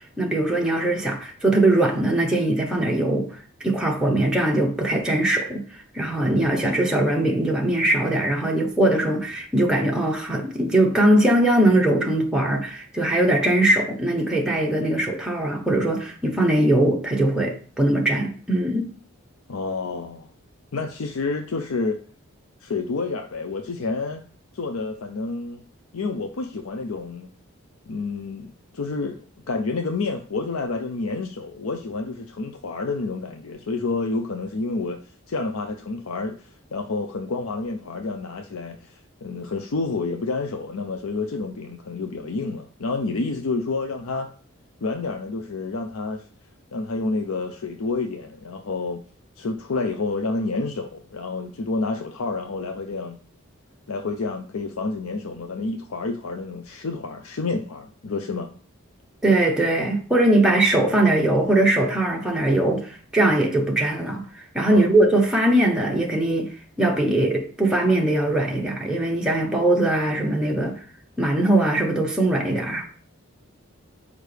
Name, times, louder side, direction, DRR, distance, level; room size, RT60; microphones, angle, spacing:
voice 1, 0.2-3.3 3.6-5.7 5.9-18.9 59.2-64.3 64.5-70.8 71.2-72.9, right 1 dB, 5° right, 1.0 m, -21 dB
voice 2, 19.5-20.3 20.7-22.0 22.6-24.2 24.5-25.6 25.9-27.3 27.9-29.2 29.5-35.0 35.3-44.3 44.8-46.2 46.7-49.0 49.4-53.2 53.9-58.5 64.7-65.0, left 3 dB, 85° left, 0.6 m, -29 dB
6.4 x 5.0 x 3.4 m
head